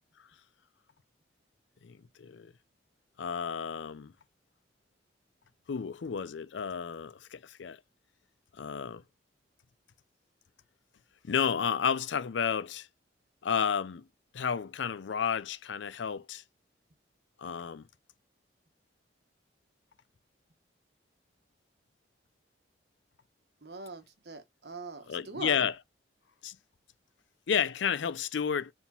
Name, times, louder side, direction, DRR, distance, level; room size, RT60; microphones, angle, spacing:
voice 1, 1.8-2.5 3.2-4.1 5.7-7.8 8.5-9.0 11.2-12.9 13.4-14.1 14.3-16.4 17.4-17.9 25.1-25.8 26.4-26.6 27.5-28.7, left 7 dB, 80° left, 0.5 m, -31 dB
voice 2, 23.6-25.7, right 3 dB, 60° right, 1.1 m, -42 dB
4.7 x 3.7 x 5.5 m
head